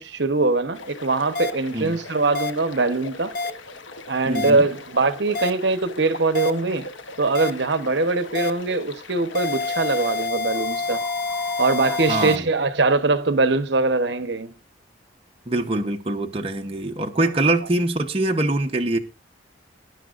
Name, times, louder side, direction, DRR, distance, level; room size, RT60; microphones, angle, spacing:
voice 1, 0.0-3.3 4.1-6.9 7.2-11.0 11.6-14.5, right 3 dB, 60° right, 1.0 m, -22 dB
sound 1, 0.7-10.3, left 3 dB, 80° left, 1.0 m, -40 dB
sound 2, 1.3-1.5 2.3-2.5 3.3-3.5 4.3-4.5 5.3-5.5 6.3-6.5 7.3-7.5 8.3-8.5 9.3-12.4, left 4 dB, 50° left, 0.7 m, -27 dB
voice 2, 4.2-4.6 12.1-12.5 15.5-19.0, right 2 dB, 30° right, 0.9 m, -23 dB
sound 3, 9.3-13.3, left 1 dB, ahead, 2.0 m, -42 dB
20.0 x 10.5 x 2.5 m
head